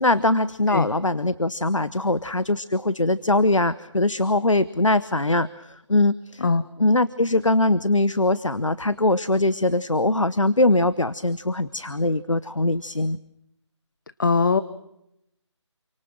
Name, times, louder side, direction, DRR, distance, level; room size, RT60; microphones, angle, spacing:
voice 1, 0.0-6.4 6.8-13.2, left 2 dB, 90° left, 16 dB, 1.0 m, -22 dB
voice 2, 14.2-14.6, left 4 dB, 40° left, 14 dB, 0.9 m, -20 dB
28.0 x 25.0 x 6.1 m, 0.81 s
figure-of-eight pair, 155°, 16 cm